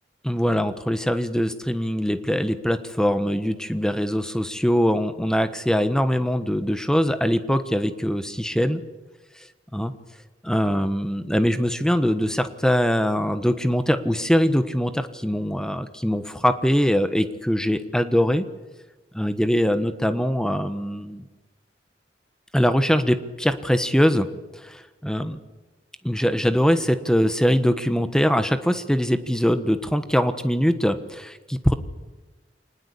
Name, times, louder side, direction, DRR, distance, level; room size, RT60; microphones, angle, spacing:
voice 1, 0.2-8.8 9.7-9.9 10.4-18.5 19.1-21.2 22.5-24.3 24.5-25.4 26.0-31.7, equal, 5° left, 10 dB, 1.3 m, -22 dB
25.5 x 19.5 x 8.4 m, 1.2 s
head